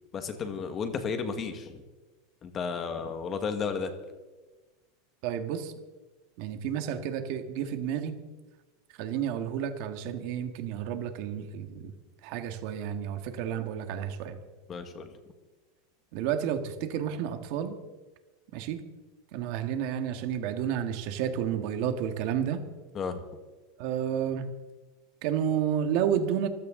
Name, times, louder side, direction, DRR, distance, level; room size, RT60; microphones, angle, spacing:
voice 1, 0.1-1.8 2.4-3.9 14.7-15.1 22.9-23.2, left 5 dB, 20° left, 8 dB, 1.5 m, -33 dB
voice 2, 5.2-5.7 6.4-8.2 9.0-11.9 12.2-14.4 16.1-17.8 18.5-18.8 19.3-22.6 23.8-24.5 25.2-26.5, right 9 dB, 45° right, 7 dB, 1.6 m, -31 dB
24.5 x 15.5 x 3.8 m, 1.2 s
supercardioid pair, 180°, 0 cm